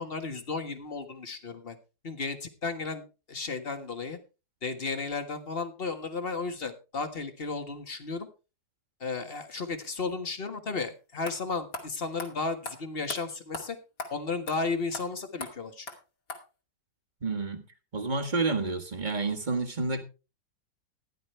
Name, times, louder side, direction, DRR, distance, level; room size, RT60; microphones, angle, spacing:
voice 1, 0.0-1.8 2.0-4.2 4.6-8.3 9.0-13.8 14.1-15.9, left 4 dB, 35° left, 1.7 m, -34 dB
sound 1, 10.8-10.9 11.3-11.4 11.7-11.9 12.2-12.3 12.6-12.8 13.1-13.2 13.5-13.6 14.0-14.1 14.5-14.6 14.9-15.0 15.4-15.5 15.9-16.0 16.3-16.4, left 3 dB, 55° left, 2.8 m, -37 dB
voice 2, 17.2-17.7 17.9-20.0, right 3 dB, 30° right, 1.6 m, -29 dB
15.0 x 11.0 x 3.3 m
omnidirectional pair, 1.8 m